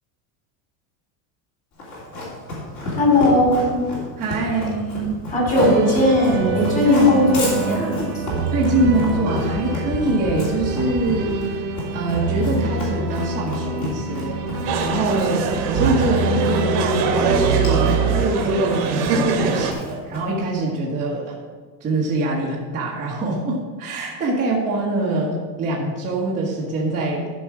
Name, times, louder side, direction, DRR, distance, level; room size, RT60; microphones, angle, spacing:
Run, 1.8-20.5, left 1 dB, 35° left, 3.1 m, -31 dB
voice 1, 3.0-3.7 5.3-8.2, left 2 dB, 15° left, -2 dB, 2.9 m, -18 dB
voice 2, 4.2-5.3 6.8-7.4 8.5-11.7 11.9-14.4 14.7-21.4 21.8-27.3, right 2 dB, 15° right, -6 dB, 1.2 m, -24 dB
sound 1, 5.5-18.3, right 4 dB, 45° right, 1.3 m, -26 dB
sound 2, 14.6-19.7, right 4 dB, 80° right, 1.7 m, -23 dB
13.0 x 5.3 x 4.8 m, 1.4 s
supercardioid pair, 165°, 46 cm